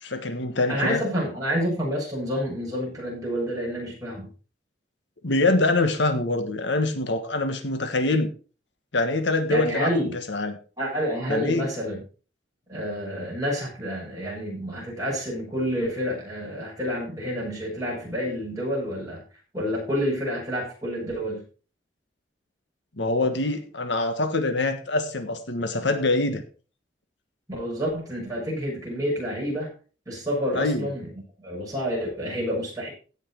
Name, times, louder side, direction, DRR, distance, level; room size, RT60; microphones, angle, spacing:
voice 1, 0.0-1.0 5.2-8.3 8.9-10.6 11.3-11.7 23.0-26.4 30.5-30.9, left 2 dB, 75° left, 8 dB, 1.5 m, -24 dB
voice 2, 0.7-4.3 9.5-10.2 10.8-12.0 12.7-19.2 19.5-21.4 27.5-29.7 30.1-31.1 31.4-32.9, equal, 20° right, -4 dB, 7.1 m, -29 dB
16.5 x 6.1 x 4.5 m, 0.37 s
head